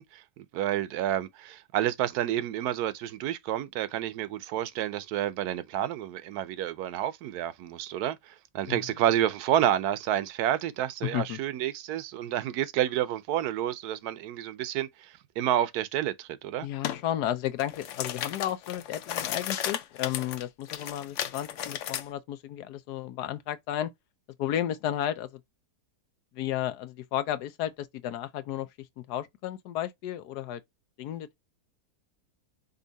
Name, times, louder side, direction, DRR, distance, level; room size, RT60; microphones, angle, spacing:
voice 1, 0.0-16.7, right 11 dB, 80° right, 1.1 m, -29 dB
voice 2, 11.0-11.4 16.6-23.9 24.4-25.4 26.3-30.6 31.0-31.4, left 12 dB, 85° left, 1.2 m, -33 dB
sound 1, 16.8-17.0 17.5-22.0, left 10 dB, 65° left, 0.8 m, -34 dB
5.4 x 2.5 x 3.9 m
omnidirectional pair, 1.7 m